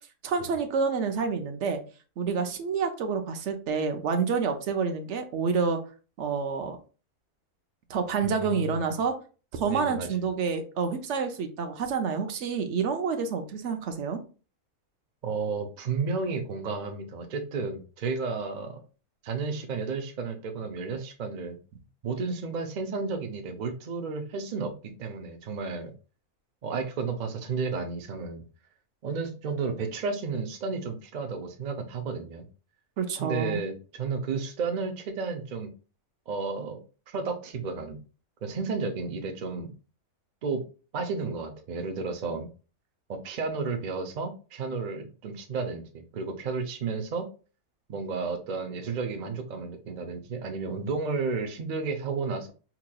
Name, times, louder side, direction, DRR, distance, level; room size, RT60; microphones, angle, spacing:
voice 1, 0.2-1.8 2.2-5.8 6.2-6.8 7.9-9.1 9.5-14.2 33.0-33.6, right 5 dB, 60° right, 6 dB, 0.8 m, -28 dB
voice 2, 8.2-8.8 9.7-10.1 15.2-18.8 19.2-21.6 22.0-25.9 26.6-28.4 29.0-32.5 33.2-35.7 36.3-38.0 38.4-39.7 40.4-40.6 40.9-42.5 43.1-47.3 47.9-52.5, right 4 dB, 80° right, 4 dB, 0.4 m, -32 dB
4.8 x 2.9 x 2.2 m, 0.35 s
omnidirectional pair, 1.6 m